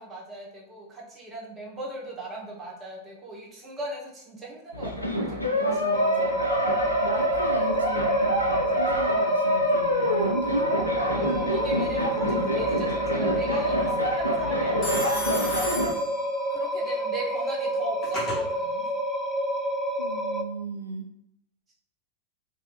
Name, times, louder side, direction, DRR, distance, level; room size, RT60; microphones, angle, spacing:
voice 1, 0.0-5.7 11.1-15.8 16.5-18.9, right 1 dB, 20° right, -4 dB, 1.2 m, -38 dB
sound 1, 4.7-15.9, equal, 90° left, 0.5 m, -26 dB
voice 2, 5.6-6.4 7.0-10.9 12.7-12.9 20.0-21.1, right 2 dB, 75° right, 3 dB, 0.3 m, -35 dB
sound 2, 5.9-20.4, equal, 10° left, 0.3 m, -29 dB
Telephone, 11.2-11.7 14.8-16.7 17.7-18.4, left 1 dB, 25° left, 1.3 m, -34 dB
3.0 x 2.6 x 2.8 m, 0.76 s
figure-of-eight pair, 90°, 0 cm